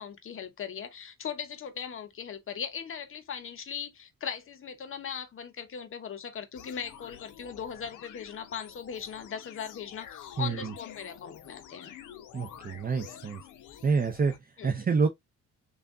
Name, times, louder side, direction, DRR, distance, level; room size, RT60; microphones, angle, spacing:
voice 1, 0.0-11.9 14.6-14.7, left 7 dB, 45° left, 0.9 m, -39 dB
sound 1, 6.6-14.4, left 10 dB, 85° left, 0.7 m, -48 dB
voice 2, 10.4-10.7 12.3-13.4 13.8-15.1, right 5 dB, 30° right, 0.6 m, -28 dB
3.4 x 2.4 x 3.5 m
cardioid pair, 90°, 30 cm